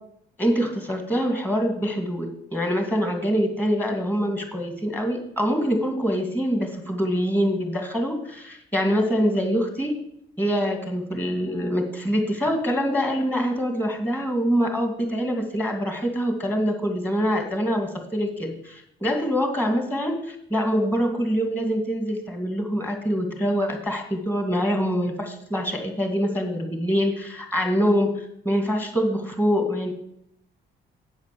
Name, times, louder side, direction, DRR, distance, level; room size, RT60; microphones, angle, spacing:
voice 1, 0.4-10.0 10.4-29.9, equal, 10° left, 3 dB, 2.4 m, -25 dB
8.1 x 5.9 x 6.9 m, 0.74 s
cardioid pair, 90°, 20 cm